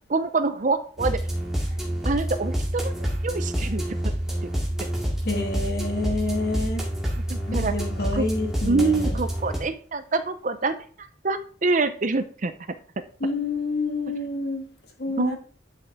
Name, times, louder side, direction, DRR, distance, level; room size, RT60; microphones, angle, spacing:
voice 1, 0.1-1.2 2.0-2.9 3.2-4.1 4.4-4.5 7.3-7.8 8.2-8.3 8.7-12.5 15.2-15.4, right 3 dB, 40° right, 11 dB, 0.6 m, -26 dB
sound 1, 1.0-9.6, equal, ahead, 2.1 m, -28 dB
voice 2, 5.2-6.8 7.5-9.2 13.2-14.6 15.0-15.4, left 2 dB, 55° left, 3 dB, 1.8 m, -28 dB
11.5 x 5.6 x 3.6 m, 0.43 s
head